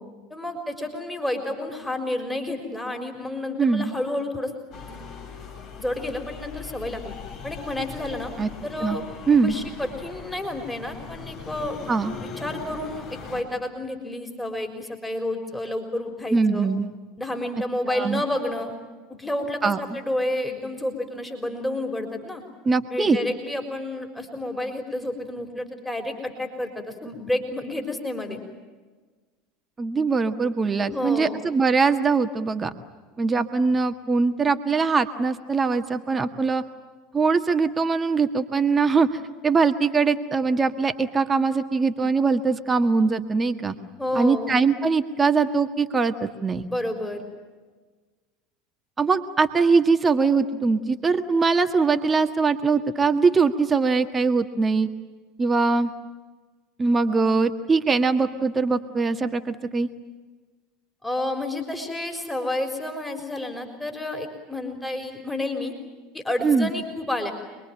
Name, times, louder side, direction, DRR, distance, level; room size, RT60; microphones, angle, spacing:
voice 1, 0.3-4.5 4.9-5.1 5.8-7.2 7.4-8.3 8.6-9.0 9.4-11.8 12.2-16.7 17.2-18.7 19.1-22.4 22.9-28.4 30.9-31.4 44.0-44.6 46.7-47.2 61.0-65.7 66.1-67.3, left 1 dB, 5° left, 4 dB, 4.2 m, -30 dB
voice 2, 3.6-3.9 8.4-8.5 8.8-9.0 9.3-9.5 11.9-12.1 16.3-16.9 17.9-18.2 19.6-19.8 22.6-23.2 29.8-32.7 33.2-36.6 37.1-43.7 44.1-46.7 49.0-54.9 55.4-55.9 56.8-59.9 66.4-66.7, right 4 dB, 25° right, 8 dB, 1.7 m, -22 dB
sound 1, 4.7-13.4, left 5 dB, 50° left, 6.1 m, -40 dB
26.5 x 22.0 x 9.0 m, 1.4 s
hypercardioid pair, 75°, 0 cm